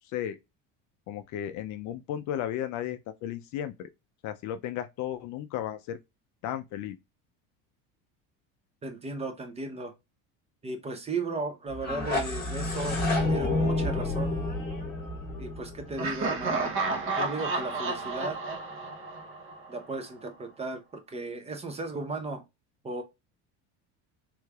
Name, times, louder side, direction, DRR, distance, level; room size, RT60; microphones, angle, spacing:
voice 1, 1.1-3.9 4.2-6.0 6.4-7.0, left 11 dB, 55° left, 0.4 m, -34 dB
voice 2, 8.8-9.9 10.6-14.3 15.4-16.7 17.2-18.4 19.7-22.4 22.8-23.0, right 3 dB, 20° right, 0.5 m, -36 dB
sound 1, 11.7-16.6, left 2 dB, 25° left, 1.1 m, -29 dB
Laughter, 16.0-19.8, right 3 dB, 35° right, 0.9 m, -31 dB
3.4 x 3.2 x 2.3 m
cardioid pair, 130°, 36 cm